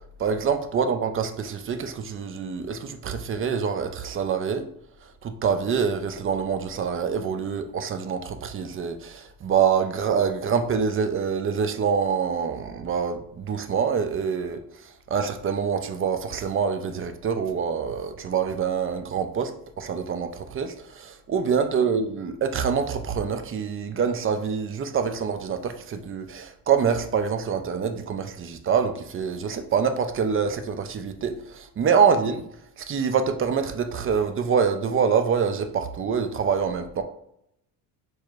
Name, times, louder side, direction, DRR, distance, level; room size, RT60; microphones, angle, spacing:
voice 1, 0.2-4.7 5.2-14.6 15.1-19.5 19.8-32.4 32.9-37.0, right 6 dB, 30° right, 8 dB, 0.5 m, -25 dB
4.5 x 3.0 x 2.4 m, 0.75 s
supercardioid pair, 90°, 42 cm